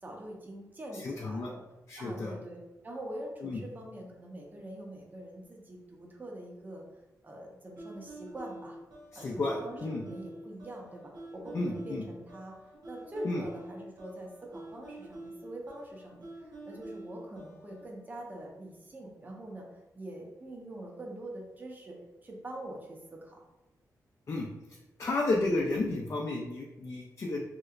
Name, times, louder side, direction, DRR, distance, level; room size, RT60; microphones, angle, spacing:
voice 1, 0.0-1.6 2.0-6.8 7.2-8.8 9.1-12.5 12.9-19.7 19.9-23.4, right 1 dB, 25° right, 0 dB, 0.6 m, -44 dB
voice 2, 1.0-1.5 1.9-2.3 3.4-3.6 9.1-10.0 11.5-12.0 13.2-13.4 24.3-24.5 25.0-27.4, left 2 dB, 45° left, -2 dB, 0.4 m, -32 dB
sound 1, 7.8-17.8, right 2 dB, 70° right, 0.8 m, -47 dB
3.2 x 2.9 x 2.4 m, 1.0 s
wide cardioid pair, 115°, 7 cm